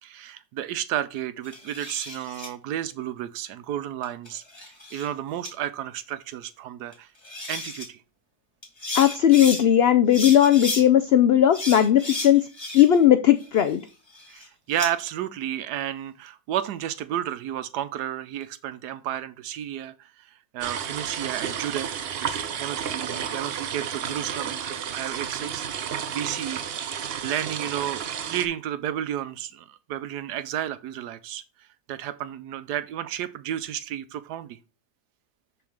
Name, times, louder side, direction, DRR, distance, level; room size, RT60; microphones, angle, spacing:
voice 1, 0.0-7.1 7.5-8.0 14.3-20.1 20.5-21.9 22.2-25.7 26.1-31.4 31.9-34.6, right 11 dB, 90° right, 1.2 m, -32 dB
sound 1, 1.4-2.5 4.0-5.1 5.4-5.5 6.9-7.0 7.2-7.9 8.6-9.6 10.1-10.8 11.5-13.0 13.4-14.9, left 2 dB, 15° left, 2.5 m, -34 dB
voice 2, 8.9-12.4 12.7-13.8, left 11 dB, 85° left, 0.5 m, -17 dB
sound 2, 20.6-28.5, right 8 dB, 60° right, 0.6 m, -32 dB
6.8 x 3.8 x 6.4 m
omnidirectional pair, 1.7 m